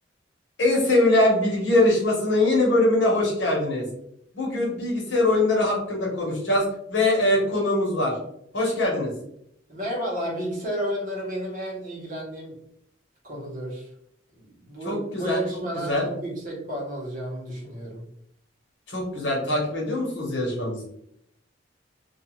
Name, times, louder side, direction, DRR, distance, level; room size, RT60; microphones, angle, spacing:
voice 1, 0.6-3.8 4.3-8.1 8.5-9.1 14.8-15.4 15.9-16.1 18.9-20.9, left 2 dB, 70° left, -3 dB, 1.0 m, -22 dB
voice 2, 9.7-12.6 13.2-13.9 14.3-18.0, equal, 45° right, -3 dB, 0.9 m, -32 dB
2.3 x 2.3 x 3.0 m, 0.73 s
head